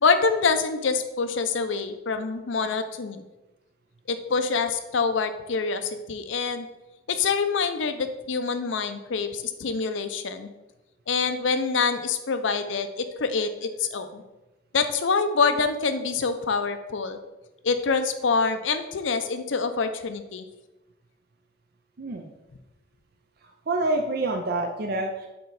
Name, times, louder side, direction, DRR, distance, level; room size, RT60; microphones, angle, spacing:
voice 1, 0.0-3.2 4.1-6.7 7.1-10.5 11.1-14.2 14.7-17.2 17.6-20.4, left 4 dB, 75° left, 9 dB, 0.6 m, -26 dB
voice 2, 22.0-22.3 23.7-25.3, right 2 dB, 50° right, 3 dB, 0.5 m, -27 dB
6.8 x 4.4 x 3.9 m, 1.0 s
head